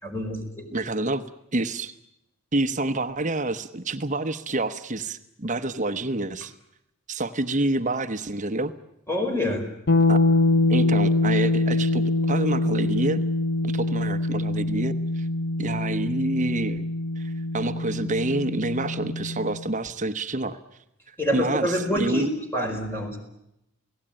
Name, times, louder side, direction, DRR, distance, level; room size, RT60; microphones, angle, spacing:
voice 1, 0.0-0.7 9.1-9.6 21.2-23.2, equal, 10° left, 4 dB, 4.8 m, -27 dB
voice 2, 0.7-1.2 1.5-1.9 2.5-6.5 7.1-8.7 10.1-10.2 10.7-13.2 13.6-15.3 15.6-16.8 17.2-20.6 21.1-22.3, right 2 dB, 35° right, 10 dB, 1.1 m, -28 dB
sound 1, 9.9-19.6, left 2 dB, 50° left, 1.0 m, -24 dB
29.0 x 18.0 x 9.0 m, 0.84 s
head